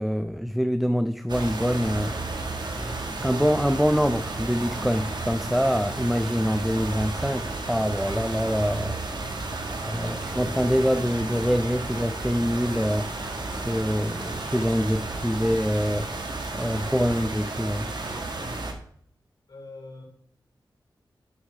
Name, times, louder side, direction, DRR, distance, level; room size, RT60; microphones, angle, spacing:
voice 1, 0.0-2.1 3.2-9.0 9.9-13.1 13.6-16.1 16.5-17.9, equal, ahead, 0.5 m, -25 dB
sound 1, 1.3-18.7, right 2 dB, 60° right, 1.6 m, -32 dB
voice 2, 18.4-18.7 19.5-20.0, left 2 dB, 50° left, 3.2 m, -46 dB
11.5 x 6.2 x 3.4 m
cardioid pair, 45°, 9 cm